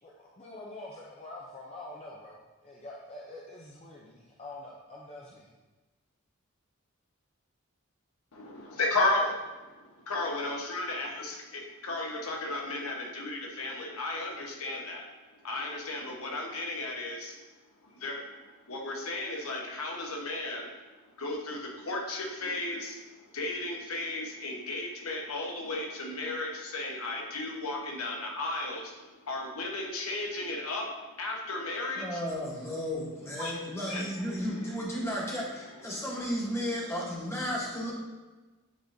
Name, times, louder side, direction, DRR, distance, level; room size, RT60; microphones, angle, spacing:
voice 1, 0.0-5.5, left 2 dB, 30° left, -4 dB, 0.6 m, -46 dB
voice 2, 8.3-9.3 10.1-15.1 15.4-17.3 17.8-18.2 18.7-20.7 21.2-23.0 23.3-32.2 33.4-33.6 33.9-34.8 35.9-36.1, left 2 dB, 80° left, 0 dB, 1.0 m, -34 dB
voice 3, 32.0-37.9, equal, 10° left, -4 dB, 1.1 m, -34 dB
9.0 x 3.9 x 2.7 m, 1.2 s
head